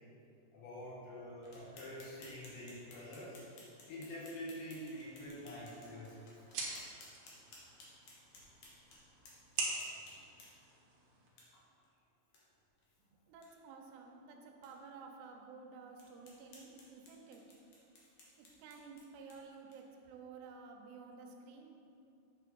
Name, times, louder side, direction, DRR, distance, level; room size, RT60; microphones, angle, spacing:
voice 1, 0.5-3.4 3.9-6.4, equal, 80° left, -5 dB, 3.3 m, -46 dB
sound 1, 1.4-10.8 11.4-11.5 11.8-11.9 12.3-12.4 12.8-12.9 13.3-13.5 14.0-14.1 14.6-14.7 15.2-15.3 16.0-20.0, left 2 dB, 65° left, 1.9 m, -59 dB
sound 2, 5.3-11.3, right 3 dB, 65° right, 2.1 m, -45 dB
voice 2, 13.1-17.4 18.4-21.7, right 4 dB, 80° right, 2 dB, 2.8 m, -53 dB
8.8 x 6.7 x 3.8 m, 2.7 s
omnidirectional pair, 5.1 m